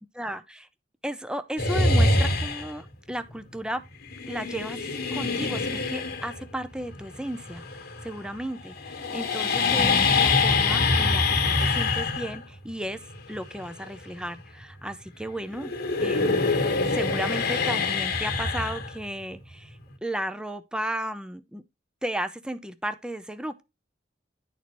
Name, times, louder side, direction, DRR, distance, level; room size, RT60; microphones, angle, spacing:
voice 1, 0.1-0.7 1.0-3.8 4.3-4.8 5.1-7.6 8.0-13.0 13.3-15.7 16.0-21.6 22.0-23.6, right 1 dB, 5° right, 0.5 m, -34 dB
sound 1, 1.6-2.9 4.1-8.3 8.6-15.2 15.5-19.3, left 3 dB, 55° left, 1.5 m, -25 dB
10.5 x 4.2 x 3.0 m
head